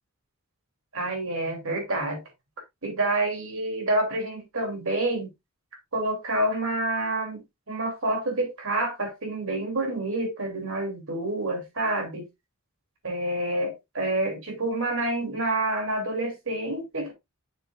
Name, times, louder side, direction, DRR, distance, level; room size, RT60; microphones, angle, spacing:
voice 1, 0.9-2.2 2.8-5.3 5.9-7.4 7.7-12.3 13.0-17.1, right 2 dB, 65° right, 2.8 m, -28 dB
6.9 x 6.4 x 2.4 m
head